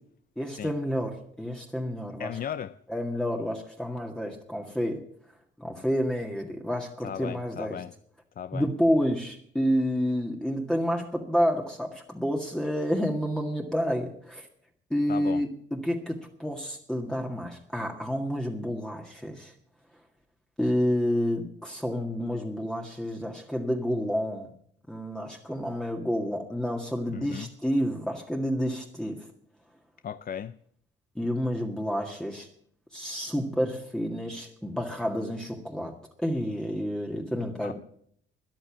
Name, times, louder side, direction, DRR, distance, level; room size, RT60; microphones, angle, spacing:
voice 1, 0.4-2.3 2.9-5.0 5.6-7.8 8.5-14.5 14.9-19.5 20.6-24.5 24.9-29.3 31.2-32.5 32.9-37.7, equal, 5° left, 1.9 m, -29 dB
voice 2, 2.2-2.8 7.0-7.9 8.4-8.7 15.1-15.5 27.1-27.5 30.0-30.5 37.6-37.7, left 8 dB, 45° left, 0.5 m, -36 dB
13.5 x 10.0 x 7.3 m
cardioid pair, 90°, 20 cm